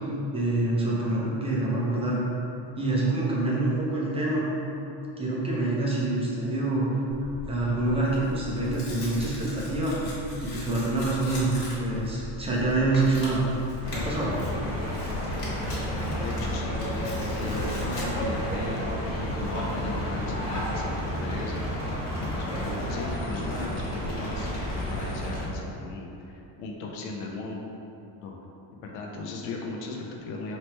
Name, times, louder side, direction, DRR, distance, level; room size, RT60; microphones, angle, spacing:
voice 1, 0.3-2.2 2.8-4.5 5.2-6.9 7.5-10.0 10.4-13.4 13.9-14.3, right 2 dB, 15° right, -6 dB, 0.3 m, -26 dB
Tearing, 7.1-19.5, left 1 dB, 55° left, 1.3 m, -39 dB
sound 1, 13.8-25.4, equal, 35° left, 1.0 m, -31 dB
sound 2, 13.8-25.1, equal, 15° left, 1.1 m, -40 dB
voice 2, 16.2-21.7 22.2-24.5 24.9-27.6 28.2-28.3 28.8-30.6, left 3 dB, 90° left, -1 dB, 0.8 m, -37 dB
3.1 x 2.9 x 4.4 m, 2.8 s
cardioid pair, 150°, 47 cm